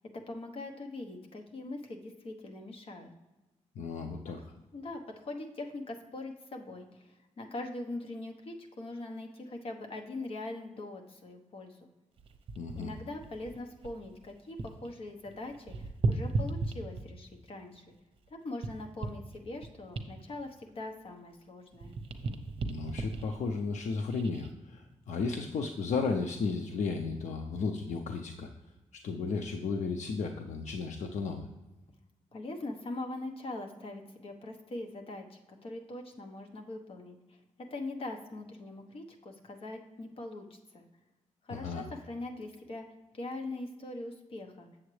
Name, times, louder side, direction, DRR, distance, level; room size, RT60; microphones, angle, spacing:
voice 1, 0.1-3.1 4.3-11.9 12.7-17.9 18.3-21.9 32.3-40.8 41.4-42.9 43.1-44.7, left 2 dB, 50° left, 3 dB, 1.0 m, -42 dB
voice 2, 3.8-4.4 12.6-12.9 22.7-28.5 29.0-31.5 41.5-41.8, left 4 dB, 75° left, 3 dB, 0.6 m, -34 dB
sound 1, 12.2-14.9 15.2-17.3 17.9-21.4 21.7-24.5 25.1-25.3, right 3 dB, 45° right, 0.7 m, -37 dB
7.8 x 7.3 x 3.2 m, 1.1 s
wide cardioid pair, 150°, 12 cm